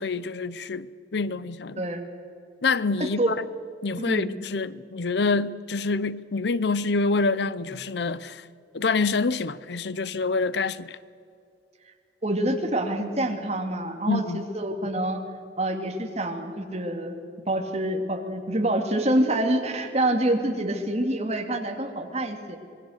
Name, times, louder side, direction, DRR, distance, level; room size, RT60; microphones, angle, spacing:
voice 1, 0.0-1.9 2.6-3.4 3.8-8.5 8.7-11.0 14.1-14.4, left 4 dB, 65° left, 0.6 m, -26 dB
voice 2, 3.0-3.3 4.0-4.3 12.2-15.2 15.6-17.1 17.5-22.6, right 1 dB, 35° right, 2.4 m, -26 dB
26.0 x 21.0 x 6.5 m
head